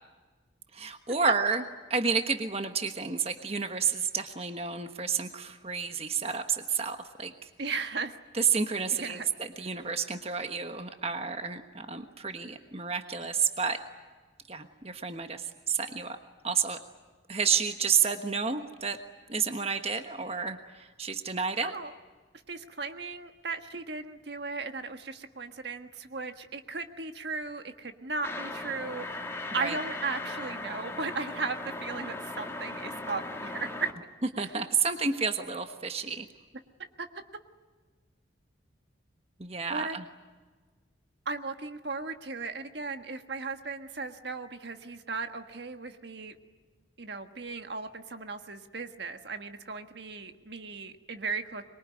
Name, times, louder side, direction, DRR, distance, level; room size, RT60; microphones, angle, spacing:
voice 1, 0.7-1.6 1.9-7.5 8.3-13.8 14.5-16.2 16.4-16.8 17.3-19.0 19.3-21.7 29.6-29.8 34.4-36.3 39.4-40.1, right 6 dB, 30° right, 7 dB, 1.3 m, -30 dB
voice 2, 7.6-8.1 8.9-9.3 21.6-21.9 22.5-33.9 37.0-37.2 39.7-40.0 41.2-46.4 47.0-51.6, right 4 dB, 60° right, 7 dB, 1.5 m, -36 dB
sound 1, 28.2-33.9, left 2 dB, 15° left, 2.1 m, -38 dB
25.0 x 22.5 x 9.8 m, 1.4 s
head